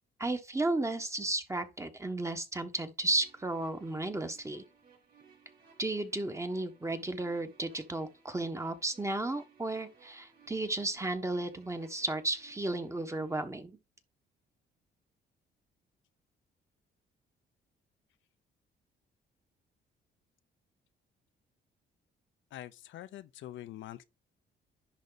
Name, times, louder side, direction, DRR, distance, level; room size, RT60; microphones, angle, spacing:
voice 1, 0.2-4.6 5.8-13.8, right 2 dB, 15° right, 1.2 m, -34 dB
sound 1, 3.0-13.4, right 6 dB, 45° right, 3.9 m, -62 dB
voice 2, 22.5-24.0, left 13 dB, 75° left, 0.6 m, -45 dB
10.5 x 4.0 x 4.0 m
cardioid pair, 90°, 20 cm